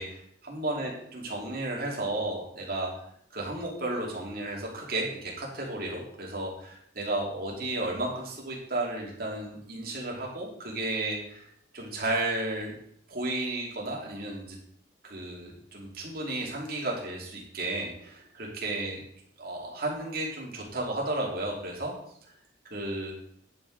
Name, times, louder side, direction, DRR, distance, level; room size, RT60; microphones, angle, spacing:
voice 1, 0.0-2.9 3.3-11.5 11.7-12.7 13.1-14.6 15.0-19.0 19.4-21.9 22.7-23.1, right 2 dB, 50° right, -2 dB, 2.6 m, -33 dB
10.0 x 6.3 x 4.7 m, 0.68 s
head